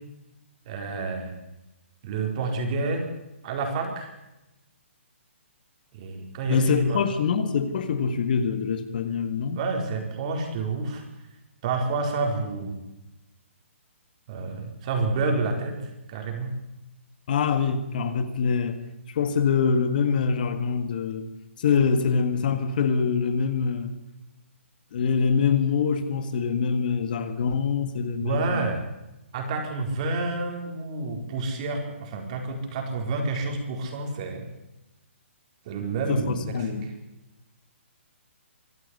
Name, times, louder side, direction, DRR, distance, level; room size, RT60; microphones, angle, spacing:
voice 1, 0.6-1.3 2.0-3.1 3.4-4.1 5.9-7.0 9.4-11.0 11.6-12.8 14.3-16.5 28.2-28.8 29.3-34.4 35.7-36.9, right 3 dB, 30° right, 4 dB, 4.6 m, -29 dB
voice 2, 6.5-9.6 17.3-18.8 19.1-21.3 21.6-23.9 24.9-28.7 36.1-36.9, left 6 dB, 40° left, 10 dB, 1.8 m, -24 dB
25.5 x 12.5 x 9.7 m, 0.96 s
hypercardioid pair, 165°, 7 cm